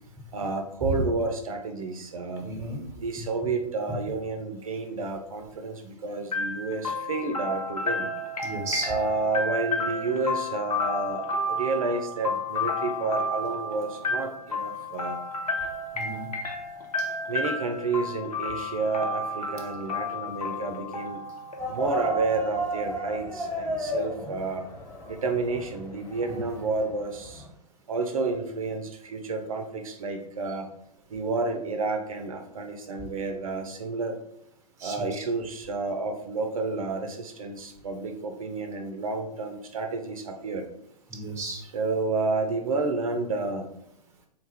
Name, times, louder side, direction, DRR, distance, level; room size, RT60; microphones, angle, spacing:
voice 1, 0.3-2.5 3.0-8.1 8.9-15.2 17.3-21.2 21.7-24.7 25.1-27.4 27.9-30.7 31.1-34.2 34.8-40.6 41.7-43.7, right 3 dB, 55° right, 6 dB, 0.5 m, -30 dB
voice 2, 2.4-2.8 8.4-8.9 15.9-16.3 17.0-17.1 26.3-26.4 34.8-35.2 41.1-41.7, right 2 dB, 15° right, 3 dB, 0.7 m, -33 dB
sound 1, 6.3-22.1, left 2 dB, 70° left, 0.8 m, -32 dB
sound 2, 21.6-27.5, equal, 15° left, 0.9 m, -34 dB
3.7 x 2.3 x 4.1 m, 0.76 s
figure-of-eight pair, 110°, 21 cm